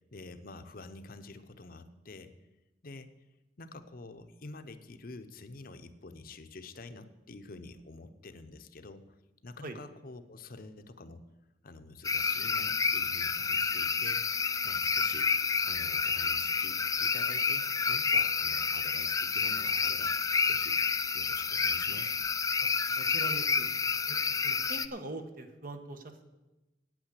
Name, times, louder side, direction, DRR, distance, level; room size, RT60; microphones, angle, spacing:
voice 1, 0.1-2.3 2.8-3.1 3.6-9.0 9.4-11.2 11.6-14.2 14.6-15.3 15.7-20.1 20.4-20.8 21.1-22.2, left 3 dB, 55° left, 9 dB, 0.8 m, -48 dB
sound 1, 12.0-24.9, left 5 dB, 20° left, 0.4 m, -29 dB
voice 2, 22.9-23.7 24.1-26.2, right 2 dB, 55° right, 7 dB, 1.2 m, -42 dB
8.9 x 8.7 x 8.3 m, 1.0 s
head